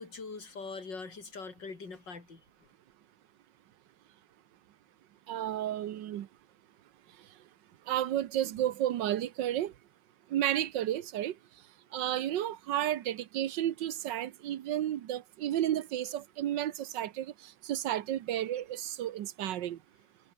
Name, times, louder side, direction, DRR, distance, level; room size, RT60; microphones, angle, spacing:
voice 1, 0.0-2.4, left 4 dB, 90° left, 4.3 m, -42 dB
voice 2, 5.3-6.3 7.9-9.7 10.3-11.3 11.9-19.8, right 12 dB, 85° right, 1.6 m, -32 dB
omnidirectional pair, 1.9 m